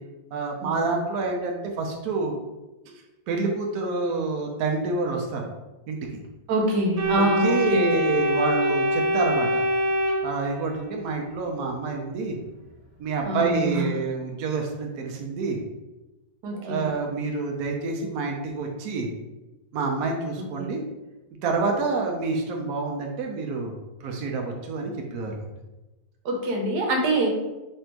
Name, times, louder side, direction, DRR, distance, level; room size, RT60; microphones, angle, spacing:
voice 1, 0.3-2.3 3.3-5.5 5.9-6.2 7.2-9.6 10.2-12.4 13.0-15.6 16.5-19.1 19.7-20.8 21.4-23.7 24.0-25.4, right 3 dB, 70° right, 1 dB, 1.1 m, -28 dB
voice 2, 6.5-8.1 13.2-13.9 16.4-16.9 20.6-20.7 26.2-27.3, right 1 dB, 90° right, 0 dB, 1.4 m, -25 dB
Organ, 7.0-10.9, equal, 35° right, 0.6 m, -24 dB
3.3 x 2.7 x 4.5 m, 1.0 s
omnidirectional pair, 1.7 m